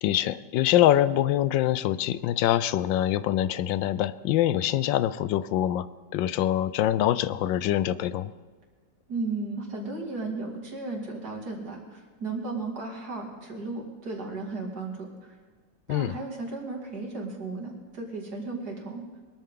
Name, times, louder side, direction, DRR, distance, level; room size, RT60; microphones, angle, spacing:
voice 1, 0.0-5.9 6.1-8.3 15.9-16.1, left 12 dB, 80° left, 16 dB, 1.3 m, -24 dB
voice 2, 9.1-15.4 15.9-19.0, right 3 dB, 55° right, 0 dB, 2.9 m, -35 dB
22.0 x 13.5 x 3.7 m, 1.4 s
omnidirectional pair, 2.0 m